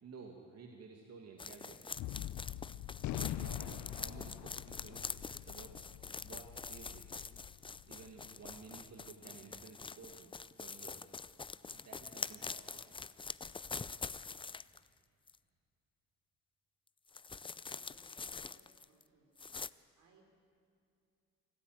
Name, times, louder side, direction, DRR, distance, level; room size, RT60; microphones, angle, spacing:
voice 1, 0.0-1.9 3.2-5.8 6.2-7.2 7.9-10.3 10.6-11.1 11.6-12.8, right 5 dB, 55° right, 2 dB, 2.3 m, -54 dB
sound 1, 1.4-14.9 15.3-15.4 17.1-19.0 19.4-19.7, left 4 dB, 15° left, 0.4 m, -45 dB
Gunshot gunfire, 2.0-8.5, left 13 dB, 70° left, 0.6 m, -44 dB
voice 2, 17.7-19.3 20.0-20.3, right 3 dB, 80° right, 2 dB, 4.4 m, -68 dB
25.5 x 14.5 x 9.4 m, 2.4 s
cardioid pair, 90°, 30 cm